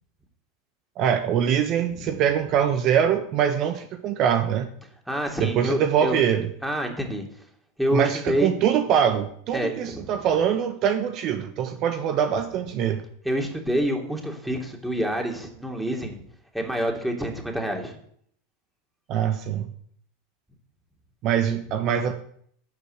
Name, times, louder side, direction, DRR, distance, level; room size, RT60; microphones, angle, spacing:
voice 1, 1.0-4.7 5.4-6.5 7.9-13.0 19.1-19.7 21.2-22.1, right 8 dB, 50° right, 7 dB, 1.1 m, -23 dB
voice 2, 5.1-6.2 6.6-7.3 7.8-8.5 9.5-10.1 13.2-16.2 16.5-18.0, equal, 5° right, 1 dB, 2.9 m, -27 dB
12.0 x 5.5 x 8.1 m, 0.64 s
hypercardioid pair, 95°, 0 cm